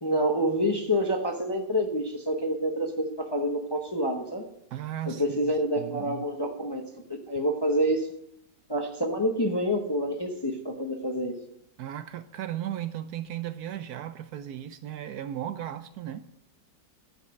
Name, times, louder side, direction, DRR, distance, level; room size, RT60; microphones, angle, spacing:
voice 1, 0.0-4.4 5.1-6.8 7.1-8.1 8.7-11.3, equal, 20° left, 0.7 m, -27 dB
voice 2, 4.7-6.2 11.8-16.3, right 11 dB, 70° right, 1.0 m, -36 dB
12.5 x 5.4 x 6.3 m
omnidirectional pair, 1.8 m